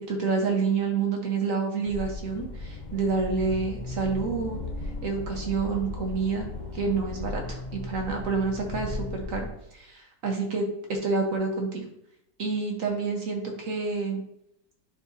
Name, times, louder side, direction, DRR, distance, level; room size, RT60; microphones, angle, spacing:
voice 1, 0.0-4.6 5.0-6.5 6.7-9.5 9.7-11.8 12.4-14.2, right 4 dB, 50° right, 1 dB, 1.4 m, -28 dB
sound 1, 1.9-9.5, left 2 dB, 55° left, 0.5 m, -36 dB
11.0 x 4.5 x 2.7 m, 0.79 s
omnidirectional pair, 1.9 m